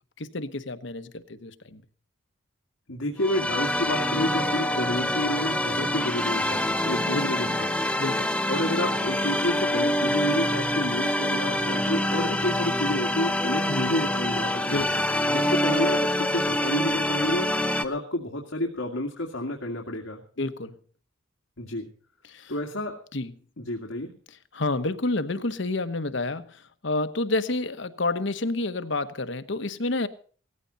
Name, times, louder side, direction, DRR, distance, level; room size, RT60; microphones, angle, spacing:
voice 1, 0.2-1.8 4.9-5.1 7.1-8.3 13.7-13.9 14.7-15.1 20.4-20.7 22.2-22.5 23.1-23.3 24.3-30.1, left 2 dB, 65° left, 1.2 m, -30 dB
voice 2, 2.9-7.7 8.5-14.8 15.3-17.5 17.8-20.2 21.6-21.9 22.5-23.0 23.6-24.1, left 1 dB, 90° left, 2.3 m, -30 dB
sound 1, 3.2-17.8, left 1 dB, 5° left, 1.0 m, -26 dB
18.0 x 15.0 x 4.1 m
head